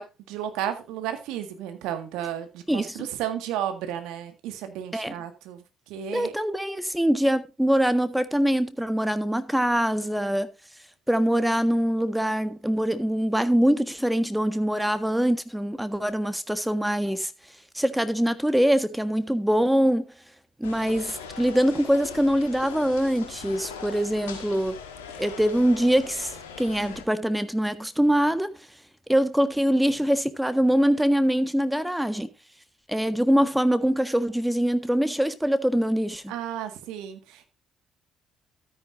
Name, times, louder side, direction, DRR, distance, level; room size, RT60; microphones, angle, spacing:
voice 1, 0.0-6.3 36.3-37.4, right 10 dB, 70° right, 1.8 m, -33 dB
voice 2, 2.7-3.1 4.9-5.1 6.1-10.5 11.1-17.3 17.7-20.0 20.6-24.7 25.1-26.3 26.6-28.5 29.1-32.3 32.9-36.3, equal, 5° right, 1.5 m, -23 dB
sound 1, 20.6-27.1, left 6 dB, 85° left, 1.7 m, -41 dB
13.0 x 9.9 x 2.6 m
hypercardioid pair, 50°, 0 cm